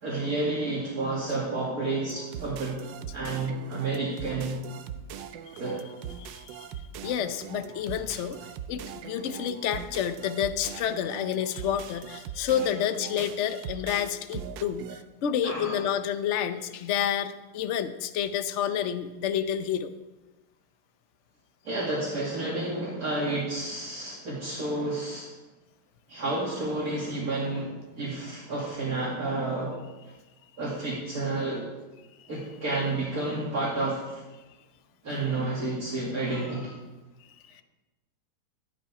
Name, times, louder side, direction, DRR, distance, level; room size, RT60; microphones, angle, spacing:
voice 1, 0.0-2.8 3.1-4.6 5.6-5.8 15.4-15.8 21.6-25.3 26.1-29.7 30.6-31.7 32.3-34.2 35.0-36.7, right 2 dB, 55° right, -6 dB, 2.6 m, -30 dB
sound 1, 2.1-15.0, right 8 dB, 90° right, 1.4 m, -41 dB
voice 2, 6.2-6.7 7.0-19.9 32.2-32.3 37.4-37.6, left 9 dB, 55° left, 10 dB, 0.8 m, -29 dB
13.5 x 10.5 x 4.8 m, 1.1 s
omnidirectional pair, 2.0 m